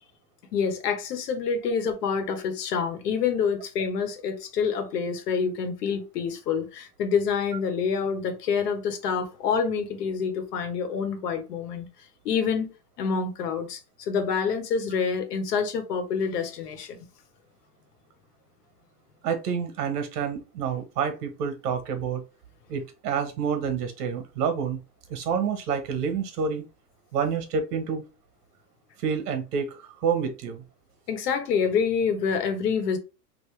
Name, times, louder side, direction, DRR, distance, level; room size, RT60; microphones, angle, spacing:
voice 1, 0.5-11.9 12.2-12.7 13.0-17.0 31.1-33.0, left 6 dB, 75° left, 1.3 m, -27 dB
voice 2, 19.2-22.2 22.7-24.8 25.1-26.6 27.1-28.0 29.0-30.6, right 6 dB, 75° right, 1.3 m, -28 dB
3.2 x 2.9 x 3.2 m
supercardioid pair, 155°, 48 cm